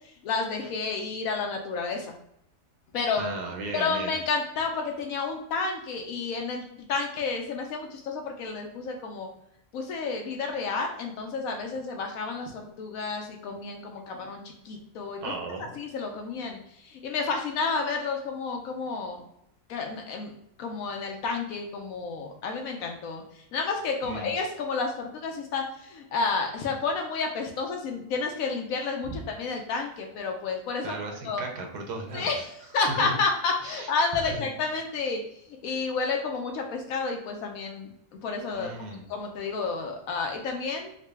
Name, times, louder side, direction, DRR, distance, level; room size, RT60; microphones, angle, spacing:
voice 1, 0.2-2.1 2.9-3.2 3.7-9.3 9.7-15.2 15.7-16.6 16.8-19.2 19.7-20.3 20.6-23.2 23.5-30.9 31.2-31.4 32.1-35.2 35.6-38.7 39.1-40.9, left 4 dB, 70° left, 2 dB, 1.0 m, -30 dB
voice 2, 3.2-4.1 15.2-15.7 24.0-24.3 30.8-32.4 32.7-33.2 33.6-34.5 38.5-39.0, right 2 dB, 80° right, 2 dB, 1.2 m, -36 dB
3.8 x 2.2 x 3.3 m, 0.74 s
omnidirectional pair, 1.7 m